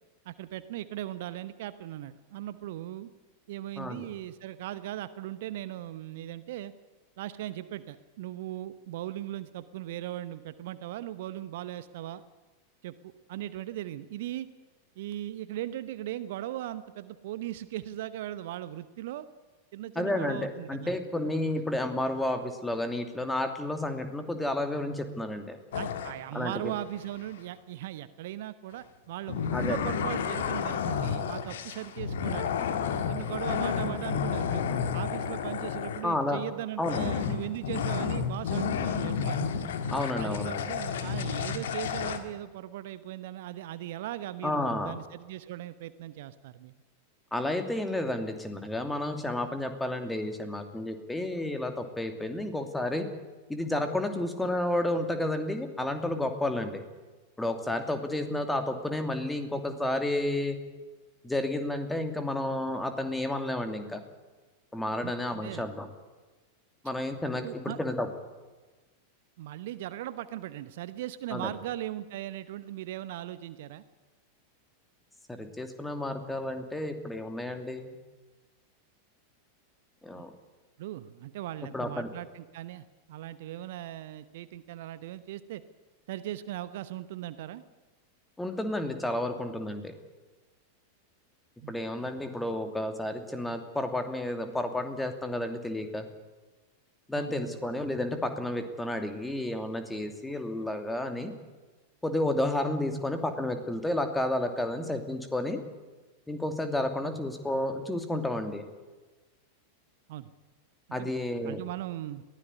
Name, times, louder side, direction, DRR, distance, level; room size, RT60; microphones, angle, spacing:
voice 1, 0.2-3.1 3.5-6.7 7.2-12.2 12.8-12.9 13.3-14.5 15.0-19.3 19.7-20.9 21.2-21.6 25.7-32.7 33.1-34.6 34.9-39.4 40.2-46.7 54.1-54.2 58.3-58.4 65.0-65.1 65.4-65.6 67.4-67.8 69.4-73.8 80.2-80.3 80.8-85.6 86.1-87.6 91.6-91.8 97.2-97.6 107.0-107.2 110.1-110.3 111.0-111.1 111.5-112.2, right 13 dB, 55° right, 14 dB, 0.9 m, -38 dB
voice 2, 3.8-4.1 19.9-25.6 26.3-26.7 29.5-29.8 36.0-36.4 36.8-37.0 39.9-40.7 44.4-45.0 47.3-53.1 53.5-56.8 57.4-60.6 61.2-64.0 64.7-65.9 66.8-68.1 71.3-71.5 75.4-78.0 80.0-80.3 81.7-82.1 88.4-89.9 91.7-96.1 97.1-101.3 102.0-105.6 106.3-108.6 110.9-111.6, left 1 dB, 5° left, 7 dB, 2.7 m, -31 dB
sound 1, 25.7-26.1 29.3-36.2 36.8-42.2, left 7 dB, 60° left, 2.0 m, -31 dB
22.0 x 16.0 x 9.7 m, 1.2 s
figure-of-eight pair, 90°, 0 cm